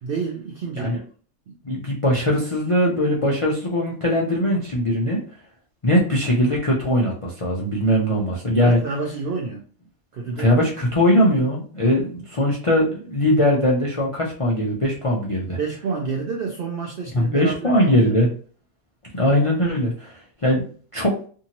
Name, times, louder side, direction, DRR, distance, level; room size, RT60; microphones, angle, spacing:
voice 1, 0.0-0.9 1.5-1.6 8.6-9.6 10.1-10.5 15.6-18.1, right 5 dB, 70° right, 1 dB, 0.5 m, -29 dB
voice 2, 1.6-5.2 5.8-8.8 10.3-15.6 17.1-18.3 19.1-20.6 20.9-21.2, equal, 55° left, -3 dB, 0.3 m, -20 dB
2.7 x 2.7 x 2.8 m, 0.42 s
omnidirectional pair, 1.5 m